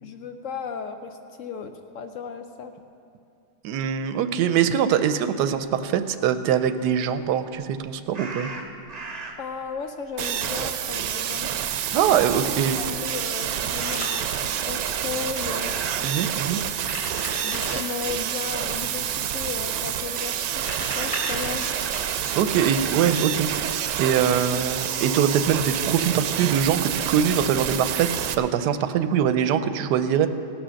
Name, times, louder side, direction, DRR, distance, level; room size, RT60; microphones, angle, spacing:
voice 1, 0.0-2.7 9.4-11.5 12.4-15.7 17.4-21.7, left 6 dB, 65° left, 7 dB, 0.8 m, -35 dB
voice 2, 3.6-8.5 11.9-12.8 16.0-16.6 22.3-30.3, right 8 dB, 90° right, 10 dB, 1.2 m, -23 dB
sound 1, 8.1-9.6 10.0-11.7 12.0-12.2 13.0-13.1 14.9-16.7, right 3 dB, 30° right, 0.8 m, -38 dB
sound 2, 10.2-28.3, right 9 dB, 75° right, 1.0 m, -28 dB
Domestic sounds home sounds, 12.7-14.1 16.7-17.8 20.3-22.0, equal, 90° left, 4.0 m, -36 dB
17.5 x 6.3 x 6.3 m, 2.5 s
omnidirectional pair, 1.7 m